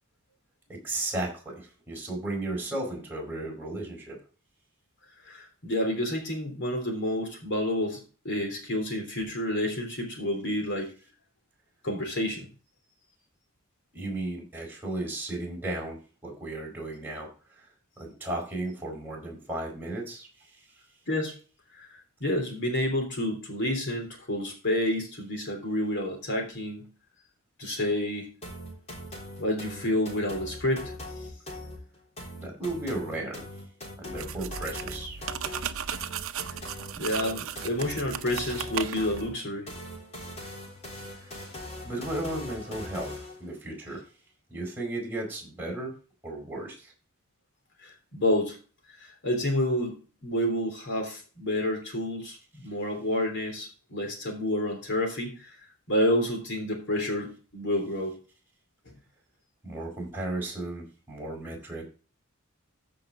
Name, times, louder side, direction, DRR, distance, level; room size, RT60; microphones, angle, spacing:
voice 1, 0.7-4.2 13.9-17.3 17.6-17.7 18.0-20.3 20.5-20.6 32.4-33.4 34.0-35.2 41.2-41.3 41.8-44.0 44.5-45.9 46.2-46.9 59.6-61.8, right 2 dB, 10° right, -2 dB, 4.8 m, -35 dB
voice 2, 5.2-10.9 11.8-12.5 21.1-21.3 21.7-21.9 22.2-26.8 27.6-28.3 29.4-30.9 37.0-39.7 47.8-48.6 49.0-55.5 55.9-58.2, left 1 dB, 55° left, 3 dB, 3.4 m, -29 dB
sound 1, 28.4-43.4, left 1 dB, 30° left, 3.4 m, -41 dB
sound 2, 34.1-39.3, right 8 dB, 65° right, 0.7 m, -36 dB
14.5 x 5.4 x 3.8 m, 0.36 s
head